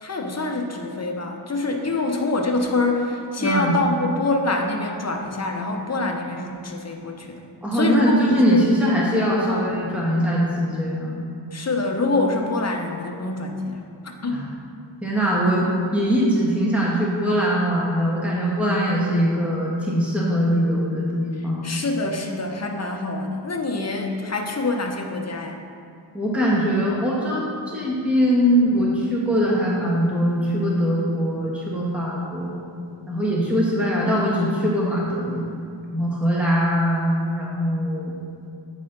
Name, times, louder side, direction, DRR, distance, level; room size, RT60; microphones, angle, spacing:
voice 1, 0.0-7.4 7.7-8.6 9.5-9.7 11.5-13.8 14.2-14.4 21.6-25.6, left 2 dB, 35° left, 2 dB, 0.8 m, -25 dB
voice 2, 3.4-3.7 7.6-11.2 15.0-21.8 26.1-27.5 27.7-32.6 33.1-35.5 35.9-38.1, equal, 5° right, -5 dB, 1.3 m, -22 dB
8.4 x 4.2 x 3.9 m, 2.5 s
wide cardioid pair, 45°, 47 cm